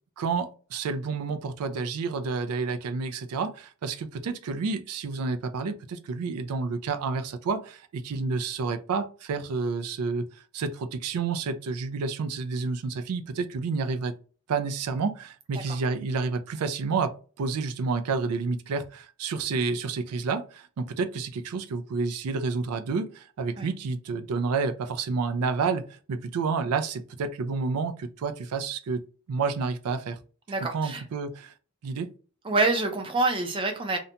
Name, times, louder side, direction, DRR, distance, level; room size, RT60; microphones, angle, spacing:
voice 1, 0.2-14.1 14.5-29.0 29.3-30.2 30.7-31.5 31.8-32.1, right 4 dB, 85° right, 0.4 m, -30 dB
voice 2, 30.5-31.0 32.4-34.0, right 3 dB, 25° right, 0.4 m, -26 dB
2.6 x 2.2 x 2.7 m
head